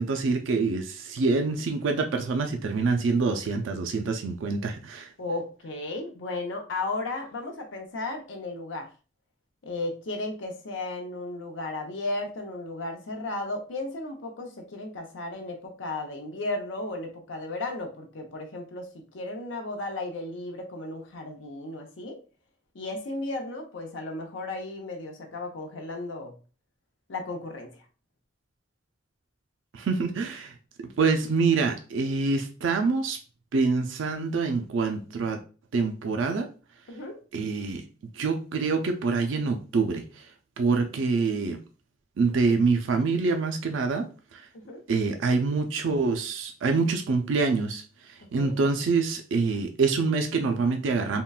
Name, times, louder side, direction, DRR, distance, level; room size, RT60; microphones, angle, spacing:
voice 1, 0.0-5.1 29.7-30.5 30.8-33.2 33.5-35.4 35.7-36.5 37.3-37.8 38.1-40.3 40.6-41.6 42.2-44.5 44.9-51.2, right 4 dB, 85° right, 5 dB, 0.4 m, -26 dB
voice 2, 5.2-8.9 9.6-22.2 22.7-26.3 27.1-27.7 36.9-37.2 44.5-44.8 48.4-48.6, left 2 dB, 85° left, 3 dB, 0.7 m, -34 dB
3.7 x 2.2 x 2.3 m, 0.36 s
head